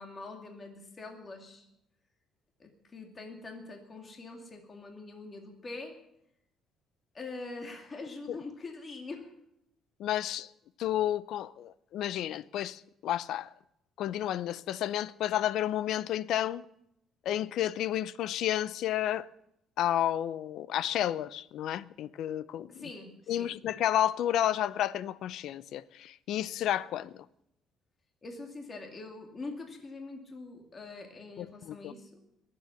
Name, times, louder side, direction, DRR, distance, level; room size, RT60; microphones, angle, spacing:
voice 1, 0.0-1.6 2.6-6.0 7.1-9.3 22.7-23.6 28.2-32.2, left 3 dB, 25° left, 2.4 m, -44 dB
voice 2, 10.0-10.5 10.8-13.5 14.0-16.6 17.2-19.3 19.8-22.9 23.3-27.3 31.4-31.9, left 12 dB, 65° left, 0.5 m, -31 dB
21.5 x 7.7 x 8.1 m
cardioid pair, 155°, 0 cm